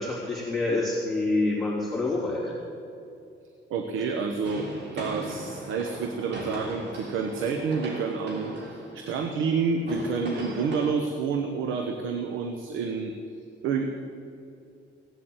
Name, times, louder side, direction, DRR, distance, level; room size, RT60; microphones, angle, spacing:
voice 1, 0.0-2.6, left 2 dB, ahead, -6 dB, 3.5 m, -27 dB
voice 2, 3.7-4.7 4.9-13.1 13.6-13.9, right 5 dB, 90° right, 6 dB, 1.0 m, -29 dB
sound 1, 4.4-10.9, right 1 dB, 60° right, 3.6 m, -39 dB
17.0 x 8.2 x 7.9 m, 2.6 s
cardioid pair, 90°, 20 cm